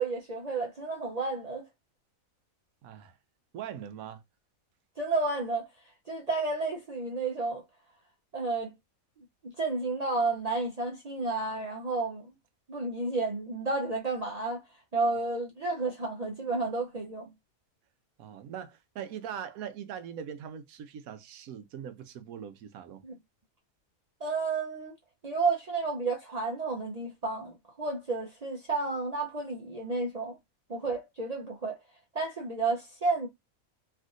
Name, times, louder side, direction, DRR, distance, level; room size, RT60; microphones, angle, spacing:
voice 1, 0.0-1.6 5.0-5.7 6.1-7.6 8.3-8.7 9.2-12.3 12.7-14.6 14.9-17.3 23.0-23.2 24.2-24.9 25.2-30.4 30.7-31.8 32.1-33.3, right 3 dB, 55° right, 0.4 m, -31 dB
voice 2, 2.8-3.2 3.5-4.2 18.2-23.0, right 8 dB, 80° right, 1.0 m, -41 dB
3.4 x 2.5 x 2.4 m
omnidirectional pair, 1.5 m